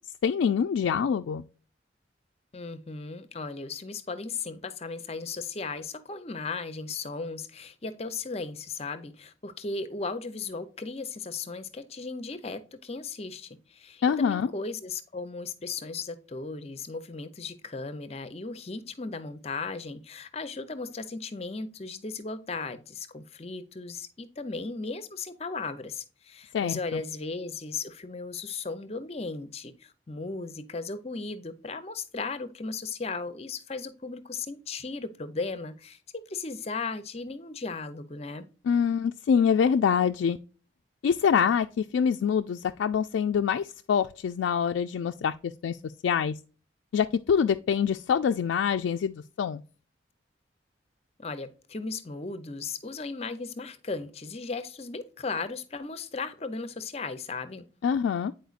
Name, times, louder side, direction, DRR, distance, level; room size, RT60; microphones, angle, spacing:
voice 1, 0.2-1.4 14.0-14.5 26.5-27.0 38.7-40.4 41.0-46.3 46.9-49.6 57.8-58.3, left 7 dB, 90° left, 0.3 m, -25 dB
voice 2, 2.5-38.5 51.2-57.7, left 4 dB, 35° left, 0.5 m, -36 dB
9.2 x 4.4 x 2.4 m
head